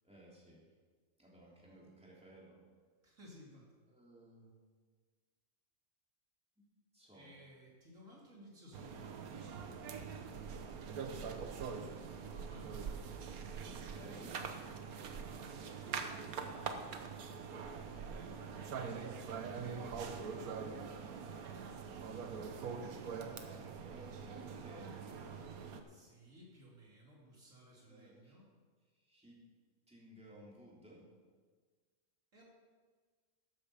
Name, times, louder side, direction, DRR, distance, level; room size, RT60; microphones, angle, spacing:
voice 1, 0.0-0.6 1.2-2.6 3.9-4.5 6.6-6.7 6.9-7.3 13.5-14.5 18.9-21.3 22.4-25.3 27.7-28.4 29.0-29.4 29.9-31.0, right 1 dB, 5° right, -5 dB, 3.2 m, -57 dB
voice 2, 3.0-3.7 7.1-9.2 9.5-10.1 12.2-13.1 13.4-14.2 15.6-16.7 25.9-28.5 32.3-32.4, equal, 65° right, -4 dB, 3.1 m, -59 dB
sound 1, 8.7-25.8, right 6 dB, 90° right, 1.4 m, -44 dB
13.5 x 8.6 x 5.7 m, 1.5 s
omnidirectional pair, 1.5 m